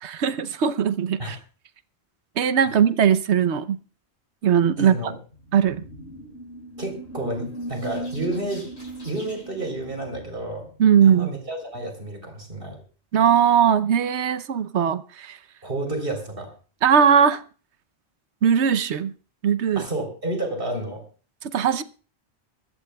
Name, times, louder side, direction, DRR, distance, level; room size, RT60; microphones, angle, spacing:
voice 1, 0.0-1.4 2.4-3.8 4.4-5.1 5.5-5.8 10.8-11.3 13.1-15.4 16.8-17.4 18.4-19.1 19.4-19.8 21.5-21.8, right 8 dB, 90° right, 13 dB, 1.1 m, -19 dB
voice 2, 4.8-5.1 6.8-8.7 9.0-10.7 11.0-12.8 15.6-16.5 19.8-21.0, right 1 dB, 55° right, 4 dB, 3.8 m, -30 dB
sound 1, 5.3-10.7, right 1 dB, 75° left, 5.9 m, -38 dB
23.0 x 14.5 x 2.3 m, 0.37 s
omnidirectional pair, 1.1 m